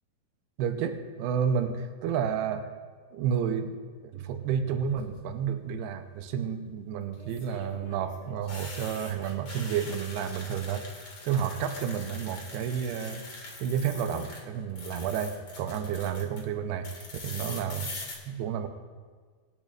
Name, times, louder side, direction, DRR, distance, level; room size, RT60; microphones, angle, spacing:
voice 1, 0.6-2.7 3.1-3.8 4.0-10.9 11.2-13.3 13.6-16.9 17.2-17.9 18.3-18.7, right 8 dB, 85° right, 6 dB, 2.7 m, -31 dB
sound 1, 4.8-5.3 7.1-14.4 14.7-16.4 16.8-18.1, left 3 dB, 45° left, 2.5 m, -43 dB
26.0 x 11.0 x 2.5 m, 1.5 s
omnidirectional pair, 4.7 m